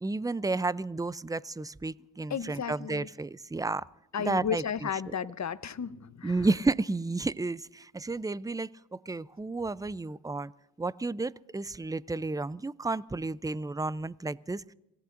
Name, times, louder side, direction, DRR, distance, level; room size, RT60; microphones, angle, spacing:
voice 1, 0.0-3.9 4.2-4.6 6.2-10.5 10.8-14.6, right 3 dB, 10° right, 19 dB, 0.5 m, -32 dB
voice 2, 2.3-3.1 4.1-6.5, left 7 dB, 40° left, 14 dB, 0.9 m, -34 dB
26.5 x 17.0 x 2.6 m, 0.91 s
supercardioid pair, 45°, 42 cm